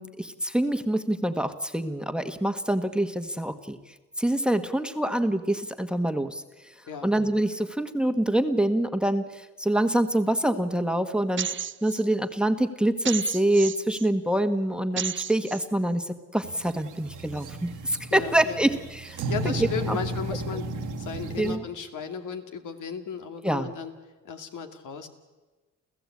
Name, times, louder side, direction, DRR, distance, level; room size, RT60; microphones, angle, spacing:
voice 1, 0.0-3.8 4.2-6.4 7.0-11.5 11.8-19.2 19.4-20.0 21.4-21.6 23.4-23.7, right 1 dB, 5° right, 9 dB, 1.4 m, -26 dB
sound 1, 11.4-12.0 13.0-14.1 15.0-15.6, right 8 dB, 40° right, 0.6 m, -32 dB
sound 2, 16.4-21.6, right 2 dB, 70° right, 1.6 m, -34 dB
voice 2, 18.1-18.7 19.2-23.9 24.2-25.1, left 6 dB, 75° left, 6 dB, 2.4 m, -35 dB
29.0 x 15.0 x 8.5 m, 1.2 s
cardioid pair, 85°, 31 cm